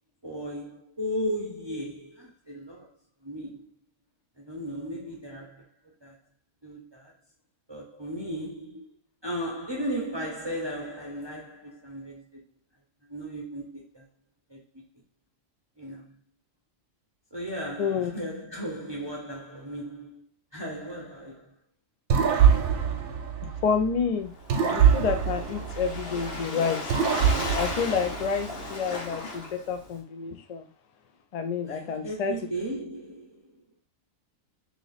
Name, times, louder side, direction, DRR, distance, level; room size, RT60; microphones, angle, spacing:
voice 1, 0.2-2.9 3.2-3.8 4.4-5.7 6.0-6.2 6.6-7.1 7.7-8.9 9.2-12.4 13.0-14.0 14.5-14.6 15.8-16.1 17.3-21.6 31.6-33.6, equal, 30° right, 0.5 m, -36 dB
voice 2, 17.8-18.1 23.4-24.3 24.6-26.9 27.6-30.7 31.3-32.4, left 6 dB, 70° left, 0.3 m, -29 dB
sound 1, 22.1-24.0 24.5-26.4 26.9-28.6, right 7 dB, 80° right, 1.1 m, -24 dB
Waves surf, 24.3-30.0, left 2 dB, 50° left, 1.1 m, -36 dB
3.0 x 2.9 x 4.0 m
omnidirectional pair, 1.4 m